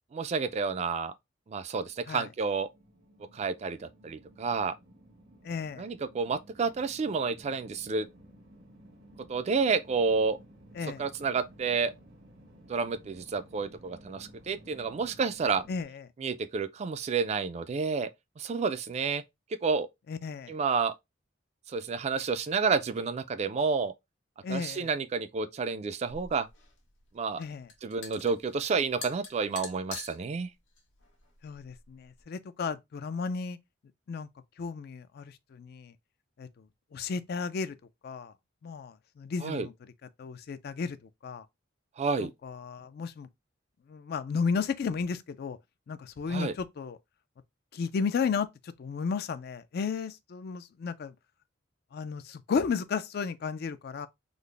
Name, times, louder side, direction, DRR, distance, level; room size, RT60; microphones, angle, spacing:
voice 1, 0.1-1.1 1.5-2.7 3.3-4.7 5.8-8.1 9.3-10.4 11.0-11.9 12.7-15.6 16.2-18.1 18.4-19.2 19.6-19.9 20.5-20.9 21.7-23.9 24.5-26.5 27.1-27.4 27.8-30.5 39.4-39.7 42.0-42.3 46.3-46.5, right 5 dB, 35° right, 0.3 m, -30 dB
sound 1, 1.9-15.8, right 1 dB, 90° right, 1.3 m, -55 dB
voice 2, 5.4-5.9 10.8-11.0 15.7-16.1 20.1-20.5 24.4-24.9 27.4-27.7 31.4-33.6 34.1-34.3 34.6-35.9 36.4-36.5 36.9-37.8 38.0-38.3 38.6-39.7 40.2-41.0 41.2-41.5 42.2-43.3 43.9-45.6 45.9-47.0 47.7-51.1 51.9-54.1, left 5 dB, 55° left, 0.3 m, -33 dB
sound 2, 26.1-32.2, left 5 dB, 85° left, 1.1 m, -46 dB
3.9 x 2.0 x 3.2 m
head